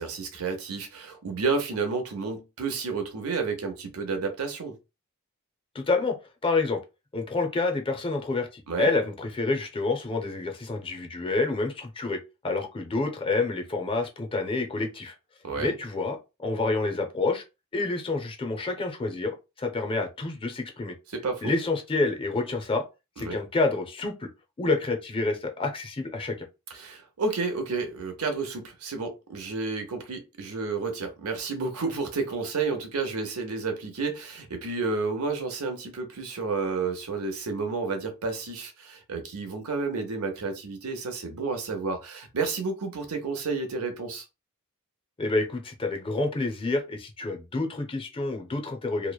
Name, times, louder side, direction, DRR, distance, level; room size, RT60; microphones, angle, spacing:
voice 1, 0.0-4.7 8.7-8.9 15.4-15.8 21.1-21.4 23.2-23.4 26.7-44.2, right 4 dB, 85° right, 0.7 m, -31 dB
voice 2, 5.7-6.2 6.4-6.8 7.1-12.2 12.4-15.1 15.6-17.4 17.7-20.9 21.4-22.8 23.2-24.3 24.6-26.5 45.2-49.1, left 3 dB, 25° left, 0.4 m, -28 dB
2.9 x 2.0 x 2.2 m
head